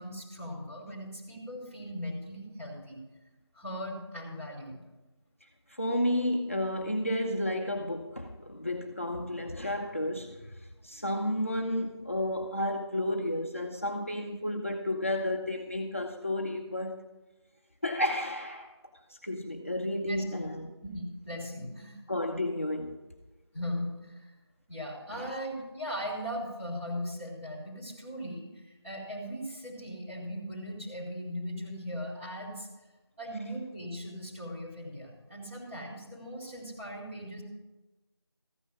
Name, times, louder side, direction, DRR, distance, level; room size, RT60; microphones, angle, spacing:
voice 1, 0.0-3.0 3.5-4.8 20.0-20.2 20.8-22.0 23.5-24.3 24.7-32.7 33.2-37.4, equal, 30° right, 4.1 m, -38 dB
voice 2, 5.7-17.1 17.8-18.7 19.1-20.7 22.1-23.1 25.1-25.3, left 1 dB, 30° left, 0.6 m, -32 dB
14.5 x 9.7 x 5.4 m
figure-of-eight pair, 175°, 14 cm